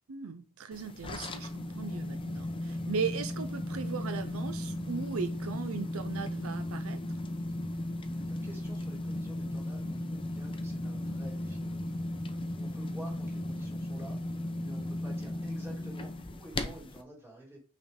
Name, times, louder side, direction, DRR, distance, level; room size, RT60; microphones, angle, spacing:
voice 1, 0.1-7.0, right 5 dB, 70° right, 0.5 m, -37 dB
sound 1, 0.7-17.0, left 1 dB, 25° left, 0.7 m, -36 dB
voice 2, 8.1-12.0 12.2-14.2 14.6-17.6, right 1 dB, 10° right, 3.1 m, -50 dB
5.9 x 3.5 x 5.1 m
head